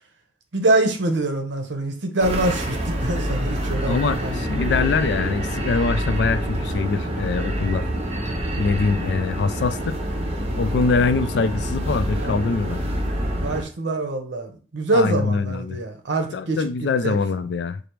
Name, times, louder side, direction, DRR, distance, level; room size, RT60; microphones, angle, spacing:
voice 1, 0.5-4.4 12.1-12.4 13.4-17.2, right 2 dB, 70° right, 0.8 m, -24 dB
sound 1, 2.2-13.6, equal, 35° right, 0.9 m, -26 dB
voice 2, 3.9-7.8 8.6-10.0 10.6-12.8 14.9-15.8 16.3-17.8, left 4 dB, 65° left, 0.3 m, -23 dB
5.0 x 2.0 x 4.6 m
head